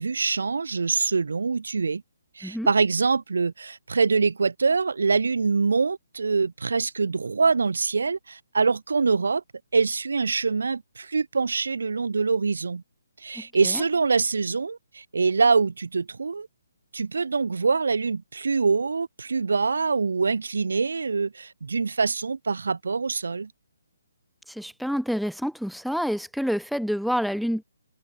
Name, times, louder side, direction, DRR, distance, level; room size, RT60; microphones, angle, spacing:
voice 1, 0.0-2.0 2.4-9.4 9.7-12.8 13.2-16.5 16.9-23.5, right 4 dB, 85° right, 2.5 m, -24 dB
voice 2, 24.5-27.6, equal, ahead, 1.3 m, -28 dB
hypercardioid pair, 175°, 0 cm